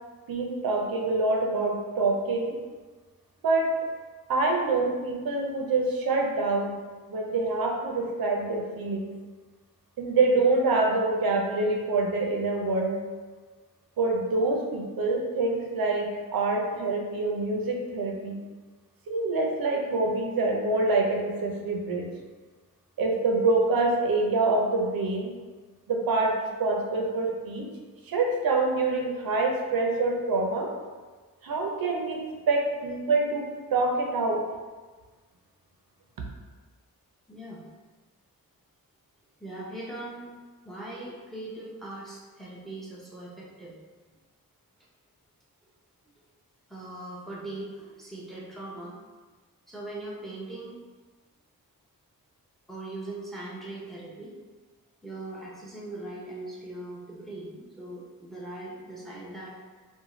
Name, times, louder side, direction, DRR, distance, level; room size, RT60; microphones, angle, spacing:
voice 1, 0.3-2.6 3.4-3.7 4.3-6.8 7.1-9.1 10.0-13.0 14.0-18.4 19.1-22.1 23.0-25.3 25.9-27.7 28.1-30.7 31.4-34.5, right 3 dB, 75° right, 1 dB, 0.6 m, -26 dB
voice 2, 37.3-37.6 39.4-40.3 40.6-43.7 46.7-49.0 49.7-50.8 52.7-54.4 55.0-59.6, right 2 dB, ahead, -5 dB, 0.6 m, -40 dB
2.5 x 2.2 x 3.0 m, 1.4 s
wide cardioid pair, 80°, 36 cm